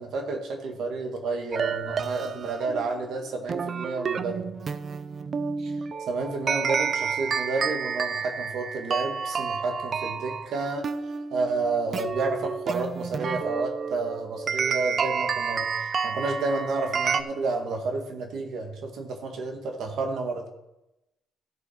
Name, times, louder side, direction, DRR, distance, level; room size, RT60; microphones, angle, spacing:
voice 1, 0.0-4.5 5.6-5.7 6.1-10.9 11.3-20.5, right 3 dB, 75° right, 3 dB, 1.8 m, -30 dB
sound 1, 1.5-17.2, right 6 dB, 45° right, 0.6 m, -30 dB
14.5 x 6.5 x 4.5 m, 0.93 s
cardioid pair, 90°, 0 cm